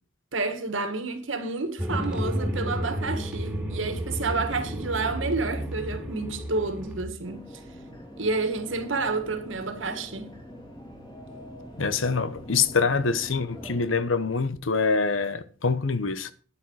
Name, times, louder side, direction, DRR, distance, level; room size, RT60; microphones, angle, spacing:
voice 1, 0.3-7.5 8.2-10.3, right 3 dB, 80° right, 1.9 m, -30 dB
sound 1, 1.8-7.0, equal, 5° right, 2.5 m, -31 dB
sound 2, 7.2-14.0, equal, 20° left, 3.5 m, -44 dB
voice 2, 11.8-16.3, left 4 dB, 90° left, 1.0 m, -25 dB
10.0 x 9.9 x 4.8 m
head